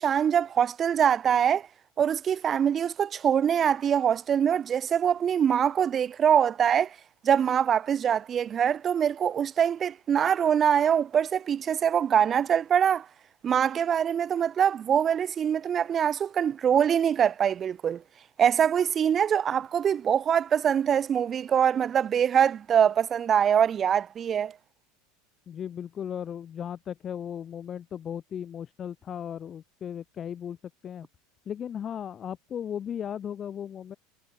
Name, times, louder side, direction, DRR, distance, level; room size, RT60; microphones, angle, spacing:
voice 1, 0.0-1.7 2.0-6.9 7.2-13.1 13.4-18.0 18.4-24.5, right 8 dB, 30° right, 0.4 m, -24 dB
voice 2, 25.5-30.6 30.8-31.1 31.5-34.0, left 9 dB, 30° left, 2.7 m, -36 dB
supercardioid pair, 120°, 0 cm